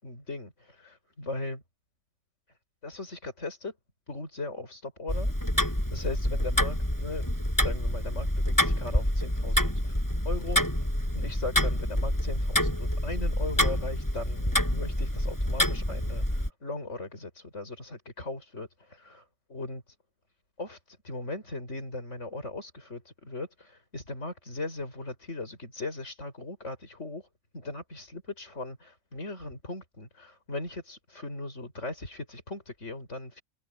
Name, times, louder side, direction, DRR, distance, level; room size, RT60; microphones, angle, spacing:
voice 1, 0.0-1.6 2.8-3.7 4.1-5.3 5.9-7.2 7.6-10.6 11.1-19.8 20.6-27.3 27.5-33.4, left 2 dB, 60° left, 6.3 m, -38 dB
Tick-tock, 5.1-16.5, equal, 15° left, 6.4 m, -27 dB
omnidirectional pair, 1.4 m